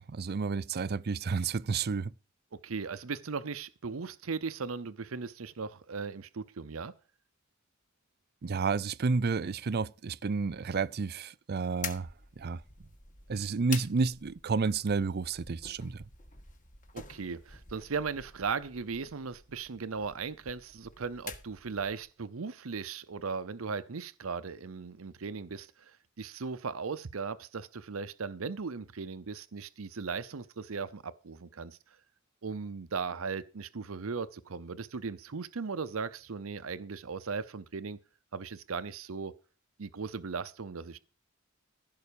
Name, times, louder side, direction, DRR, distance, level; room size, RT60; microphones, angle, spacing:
voice 1, 0.0-2.1 8.4-12.1 12.4-12.6 13.3-16.0, right 4 dB, 50° right, 0.5 m, -31 dB
voice 2, 2.5-6.9 16.9-31.8 32.4-38.0 38.3-39.3 39.8-41.0, right 5 dB, 90° right, 0.7 m, -37 dB
sound 1, 11.8-22.1, left 6 dB, 40° left, 1.7 m, -47 dB
15.5 x 5.6 x 6.9 m
head